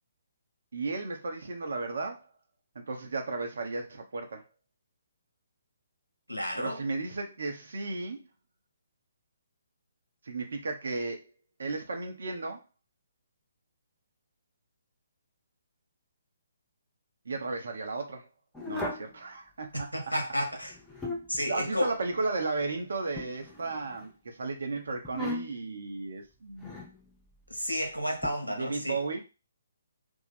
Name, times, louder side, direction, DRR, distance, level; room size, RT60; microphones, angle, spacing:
voice 1, 0.7-2.3 2.7-4.4 6.6-8.2 10.2-11.3 11.6-12.6 17.2-18.3 18.7-19.9 21.5-26.8 28.6-29.2, right 3 dB, 60° right, 0.8 m, -34 dB
voice 2, 6.3-6.8 19.9-20.8 21.3-21.9 27.5-29.0, equal, 90° left, 1.1 m, -31 dB
Moving table, 18.6-19.1 20.6-21.4 23.2-24.1 25.0-25.7 26.6-27.0 28.2-28.3, left 2 dB, 5° left, 0.6 m, -37 dB
2.7 x 2.4 x 4.1 m
figure-of-eight pair, 135°, 0 cm